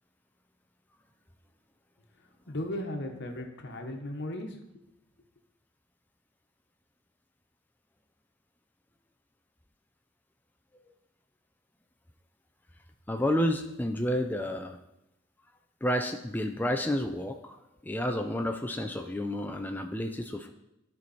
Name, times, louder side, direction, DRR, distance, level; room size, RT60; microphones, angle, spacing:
voice 1, 2.5-4.6, left 1 dB, 60° left, 4 dB, 1.2 m, -36 dB
voice 2, 13.1-14.8 15.8-17.6 17.8-20.5, left 1 dB, 10° left, 4 dB, 0.5 m, -30 dB
12.5 x 4.6 x 4.2 m, 0.88 s
head